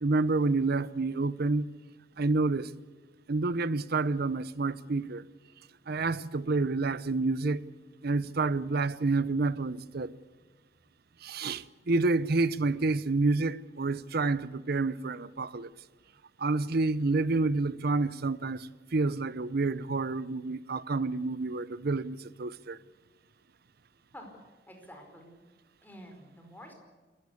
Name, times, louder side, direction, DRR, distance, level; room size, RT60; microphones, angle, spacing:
voice 1, 0.0-1.7 2.2-2.7 3.3-5.2 5.9-7.6 8.0-10.2 11.2-15.7 16.4-22.8, right 3 dB, 55° right, 0.7 m, -29 dB
voice 2, 24.7-25.4 25.8-26.7, equal, 10° left, 4.7 m, -49 dB
27.0 x 15.0 x 8.4 m
head